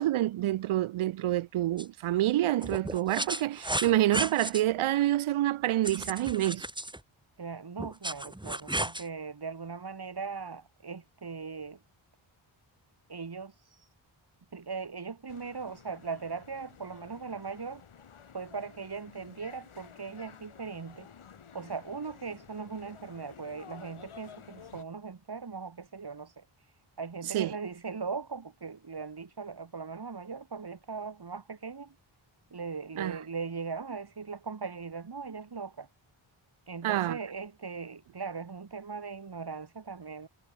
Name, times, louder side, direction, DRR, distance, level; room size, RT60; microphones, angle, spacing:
voice 1, 0.0-6.6 27.2-27.5 33.0-33.2 36.8-37.2, right 14 dB, 85° right, 0.6 m, -27 dB
sound 1, 1.8-1.9 2.6-4.6 5.8-7.0 7.8-9.0, right 1 dB, 10° right, 2.9 m, -34 dB
voice 2, 7.4-11.8 13.1-13.5 14.5-17.8 18.3-21.1 21.5-26.4 27.0-31.9 32.5-35.9 36.7-40.3, right 5 dB, 50° right, 6.1 m, -39 dB
sound 2, 15.3-24.8, left 7 dB, 85° left, 4.9 m, -52 dB
wide cardioid pair, 85°, 49 cm